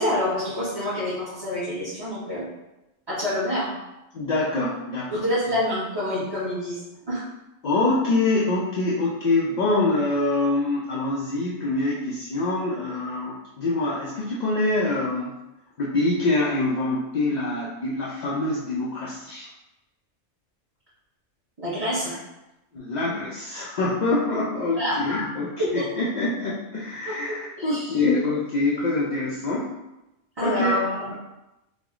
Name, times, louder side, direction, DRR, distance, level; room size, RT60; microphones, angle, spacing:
voice 1, 0.0-2.5 3.1-3.8 5.1-6.8 7.1-7.2 21.6-22.1 24.8-25.0 25.6-25.9 27.0-28.0 30.4-31.1, left 1 dB, 25° right, -12 dB, 1.0 m, -27 dB
voice 2, 4.1-5.2 7.6-15.3 15.8-19.5 22.1-22.2 22.7-29.7 30.4-30.8, left 2 dB, 60° left, -6 dB, 0.4 m, -25 dB
3.2 x 2.1 x 3.5 m, 0.95 s
omnidirectional pair, 1.2 m